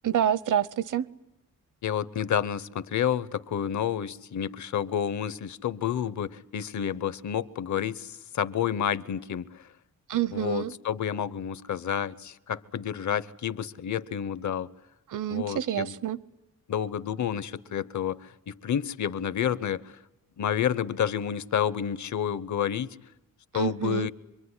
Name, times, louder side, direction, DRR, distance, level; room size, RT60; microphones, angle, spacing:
voice 1, 0.0-1.1 10.1-10.7 15.1-16.2 23.5-24.1, right 10 dB, 70° right, 19 dB, 0.9 m, -27 dB
voice 2, 1.8-9.7 10.3-14.7 15.3-15.9 16.7-20.0 20.4-23.0 23.5-24.1, left 9 dB, 60° left, 17 dB, 0.9 m, -30 dB
26.0 x 23.5 x 9.8 m, 0.92 s
wide cardioid pair, 150°, 33 cm